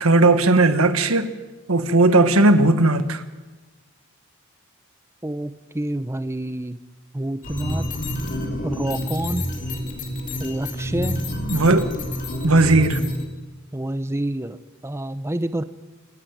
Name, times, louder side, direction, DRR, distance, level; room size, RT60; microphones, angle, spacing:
voice 1, 0.0-1.3 1.7-3.2 11.5-11.9 12.4-13.0, right 2 dB, 85° right, 1.5 m, -17 dB
voice 2, 5.2-6.8 7.1-7.9 8.6-9.5 10.4-11.2 13.7-15.6, right 1 dB, 15° right, 0.6 m, -28 dB
sound 1, 7.4-13.3, equal, 40° left, 2.8 m, -28 dB
28.0 x 11.0 x 9.2 m
head